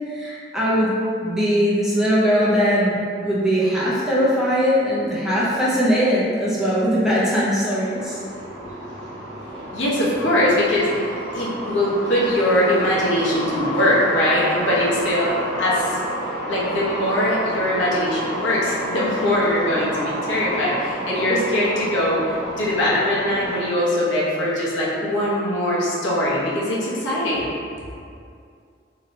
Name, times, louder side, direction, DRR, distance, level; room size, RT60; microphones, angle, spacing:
voice 1, 0.1-0.9 1.2-8.2, equal, ahead, -8 dB, 0.4 m, -20 dB
sound 1, 7.9-23.6, equal, 65° right, 0.7 m, -30 dB
voice 2, 9.7-15.3 15.6-16.0 16.5-27.5, left 1 dB, 80° left, -7 dB, 0.8 m, -21 dB
3.0 x 2.8 x 2.6 m, 2.3 s
head